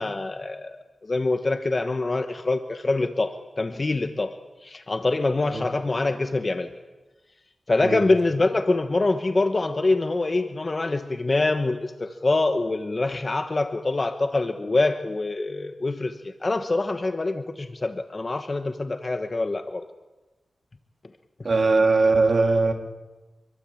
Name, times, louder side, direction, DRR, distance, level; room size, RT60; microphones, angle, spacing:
voice 1, 0.0-4.3 4.6-6.7 7.7-19.8, left 2 dB, 30° left, 8 dB, 1.3 m, -25 dB
voice 2, 21.4-22.7, right 3 dB, 50° right, 4 dB, 3.4 m, -20 dB
26.5 x 23.0 x 8.8 m, 1.1 s
wide cardioid pair, 135°, 0 cm